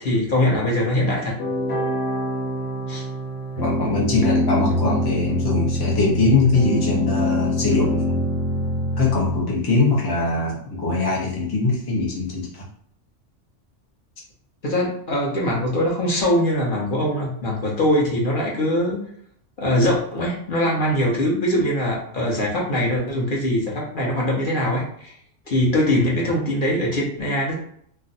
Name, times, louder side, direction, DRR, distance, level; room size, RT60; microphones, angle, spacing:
voice 1, 0.0-1.3 2.9-3.0 14.6-19.0 19.6-25.1 25.5-27.5, left 1 dB, 50° left, -3 dB, 0.9 m, -22 dB
sound 1, 1.4-9.4, equal, 85° left, 1.1 m, -24 dB
voice 2, 3.6-8.3 9.0-12.7, left 3 dB, 25° left, -4 dB, 0.6 m, -22 dB
2.5 x 2.2 x 3.9 m, 0.65 s
omnidirectional pair, 1.2 m